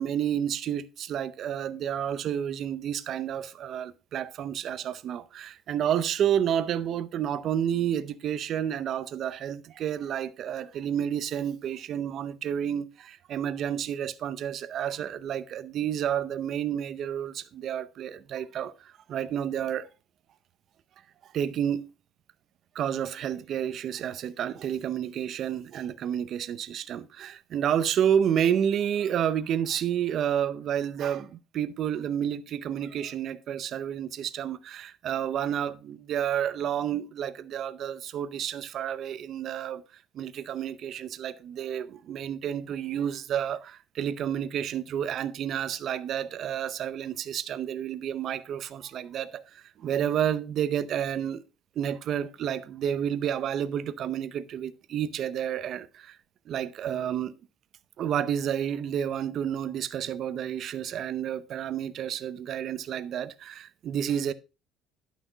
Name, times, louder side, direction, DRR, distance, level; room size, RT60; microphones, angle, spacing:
voice 1, 0.0-19.9 21.2-21.9 22.7-39.8 40.1-51.4 51.8-56.2 56.5-57.3 58.0-64.3, right 9 dB, 40° right, 0.7 m, -30 dB
11.5 x 6.1 x 4.0 m
cardioid pair, 165°, 0 cm